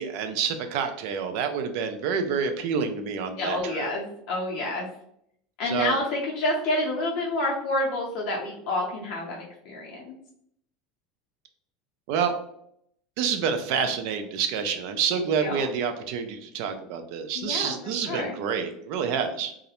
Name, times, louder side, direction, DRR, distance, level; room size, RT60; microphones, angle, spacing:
voice 1, 0.0-3.9 5.6-6.0 12.1-12.3 13.2-19.5, right 6 dB, 60° right, 7 dB, 0.4 m, -28 dB
voice 2, 3.4-4.9 5.6-9.4 9.6-10.1 15.1-15.6 17.3-18.4, left 2 dB, 55° left, -2 dB, 0.5 m, -29 dB
2.3 x 2.0 x 2.8 m, 0.70 s
supercardioid pair, 150°, 0 cm